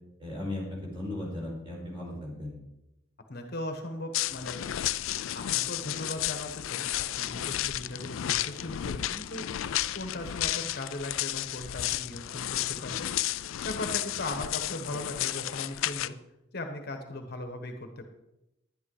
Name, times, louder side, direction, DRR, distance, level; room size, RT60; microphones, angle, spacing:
voice 1, 0.2-2.6, left 1 dB, 25° right, -4 dB, 5.0 m, -36 dB
voice 2, 3.3-4.6 5.3-9.5 9.9-13.1 13.6-16.2 16.5-18.0, left 1 dB, 50° left, 6 dB, 1.2 m, -38 dB
sound 1, 4.1-16.1, left 13 dB, 80° left, 0.4 m, -32 dB
11.0 x 10.5 x 4.9 m, 0.92 s
head